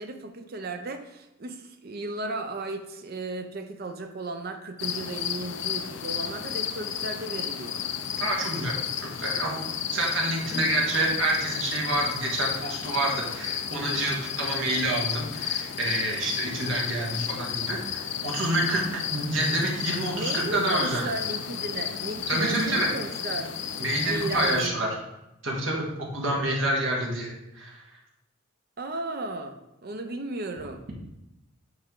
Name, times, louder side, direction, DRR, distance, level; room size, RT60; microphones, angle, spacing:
voice 1, 0.0-7.8 10.5-10.7 20.1-23.5 24.0-24.9 28.8-30.8, right 2 dB, 45° right, 6 dB, 0.6 m, -35 dB
sound 1, 4.8-24.7, left 9 dB, 55° left, 0.4 m, -33 dB
voice 2, 8.2-18.8 19.1-21.0 22.3-22.9 23.8-24.9 25.4-27.8, right 1 dB, 60° right, -2 dB, 1.5 m, -28 dB
8.7 x 3.5 x 3.8 m, 0.93 s
head